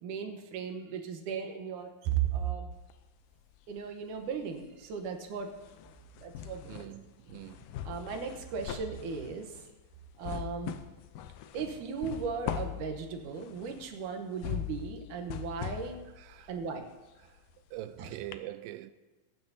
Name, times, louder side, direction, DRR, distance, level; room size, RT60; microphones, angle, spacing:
voice 1, 0.0-2.7 3.7-5.5 6.2-6.9 7.8-9.5 10.2-10.8 11.5-16.0 16.5-16.9 18.0-18.1, right 7 dB, 70° right, 2.4 m, -36 dB
sound 1, 2.7-3.9 4.2-17.9 18.3-18.4, left 11 dB, 80° left, 2.1 m, -42 dB
voice 2, 6.6-7.7 16.2-16.5 17.2-17.4 17.7-18.9, right 15 dB, 90° right, 2.3 m, -43 dB
20.5 x 9.5 x 2.7 m
omnidirectional pair, 4.0 m